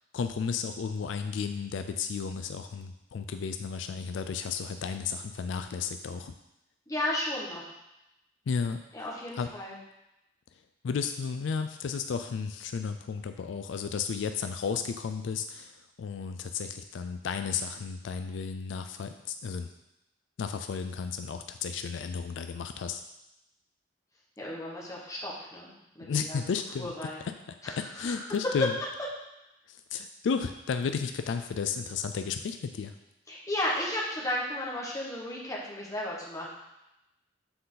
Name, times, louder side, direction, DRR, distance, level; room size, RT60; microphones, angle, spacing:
voice 1, 0.1-6.3 8.5-8.8 9.4-9.5 10.8-19.7 20.4-23.0 26.0-27.0 27.2-28.7 29.7-33.0, left 6 dB, 80° left, 8 dB, 0.4 m, -33 dB
voice 2, 6.9-7.8 8.9-9.7 24.4-25.7 26.0-26.4 26.8-27.2 27.6-28.2 33.3-36.5, left 1 dB, 15° left, -5 dB, 1.4 m, -34 dB
7.6 x 4.2 x 3.9 m, 0.91 s
head